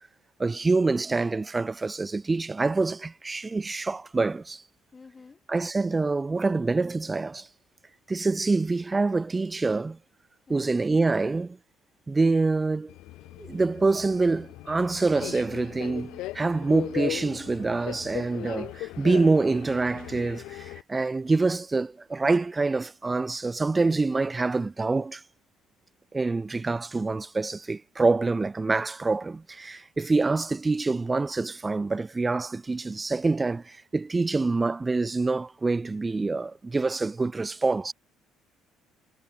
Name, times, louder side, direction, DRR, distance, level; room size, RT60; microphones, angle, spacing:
voice 1, 0.4-4.6 5.5-7.5 8.1-10.0 10.5-11.6 12.1-12.9 13.4-25.2 26.1-37.9, right 3 dB, 25° right, 0.3 m, -26 dB
voice 2, 4.9-5.4 10.5-10.8, left 4 dB, 30° left, 6.2 m, -49 dB
Subway metro underground, 12.9-20.8, left 18 dB, 70° left, 0.4 m, -38 dB
hypercardioid pair, 60°, 0 cm